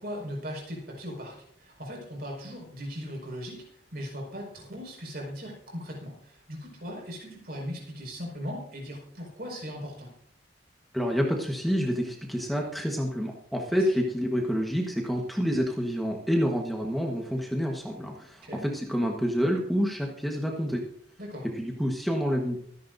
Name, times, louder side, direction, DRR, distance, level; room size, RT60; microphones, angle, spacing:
voice 1, 0.0-3.6 3.9-10.1 18.4-18.6 21.2-21.5, equal, 55° right, -1 dB, 5.3 m, -38 dB
voice 2, 10.9-20.8 21.5-22.6, equal, ahead, 0 dB, 1.3 m, -28 dB
24.0 x 10.5 x 2.7 m, 0.65 s
head